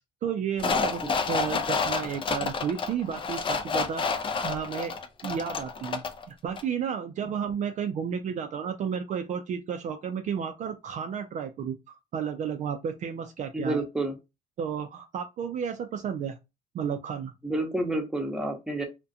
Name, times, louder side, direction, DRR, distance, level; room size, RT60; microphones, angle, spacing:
voice 1, 0.2-4.1 4.4-4.9 5.2-13.8 14.6-16.4 16.7-17.3, right 7 dB, 45° right, 0.4 m, -32 dB
sound 1, 0.6-6.2 6.6-6.7, left 5 dB, 30° left, 0.4 m, -29 dB
voice 2, 13.5-14.1 17.4-18.8, right 2 dB, 5° right, 0.8 m, -29 dB
2.4 x 2.1 x 2.6 m
cardioid pair, 110°, 17 cm